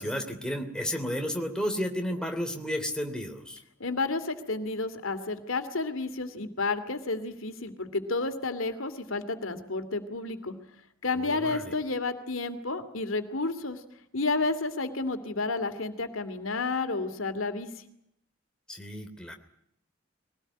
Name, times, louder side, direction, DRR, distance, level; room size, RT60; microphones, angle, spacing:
voice 1, 0.0-3.6 11.2-11.7 18.7-19.3, equal, 5° left, 4 dB, 3.0 m, -32 dB
voice 2, 3.8-10.5 11.0-13.8 14.1-17.7, left 3 dB, 85° left, 10 dB, 2.5 m, -31 dB
23.0 x 18.5 x 9.8 m, 0.73 s
head